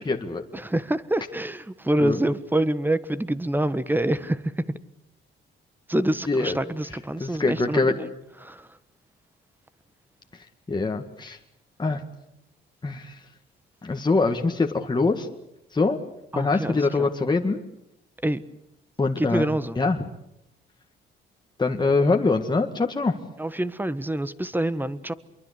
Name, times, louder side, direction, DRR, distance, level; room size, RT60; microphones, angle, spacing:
voice 1, 0.0-0.4 2.0-2.2 6.3-6.5 7.2-7.9 10.7-11.4 11.8-12.0 12.8-13.2 13.8-15.3 15.7-16.0 16.4-17.6 19.0-19.5 19.8-20.0 21.6-23.2, left 3 dB, 20° left, 3 dB, 1.9 m, -23 dB
voice 2, 0.5-4.6 5.9-8.1 8.4-8.8 15.8-15.9 16.3-17.1 18.2-18.4 19.2-19.8 23.4-25.1, right 1 dB, 10° right, 14 dB, 1.4 m, -26 dB
26.0 x 23.5 x 8.3 m, 0.85 s
cardioid pair, 90°, 20 cm